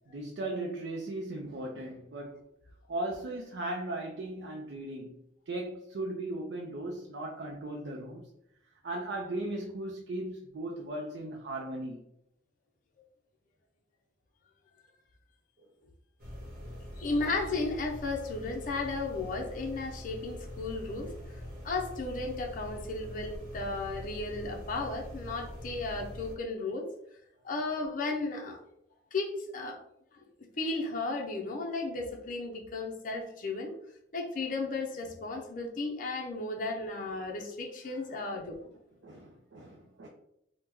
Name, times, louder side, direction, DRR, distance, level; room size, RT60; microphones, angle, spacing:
voice 1, 0.1-2.4 2.9-5.1 5.5-8.3 8.8-12.0 38.1-38.2 39.0-40.1, right 1 dB, 75° right, 0 dB, 0.4 m, -37 dB
sound 1, 16.2-26.4, equal, 50° right, 0.9 m, -43 dB
voice 2, 17.0-26.9 27.4-28.6 29.1-29.8 30.1-33.7 34.1-38.6, left 3 dB, 50° left, 1 dB, 0.5 m, -34 dB
3.0 x 2.1 x 3.5 m, 0.77 s
head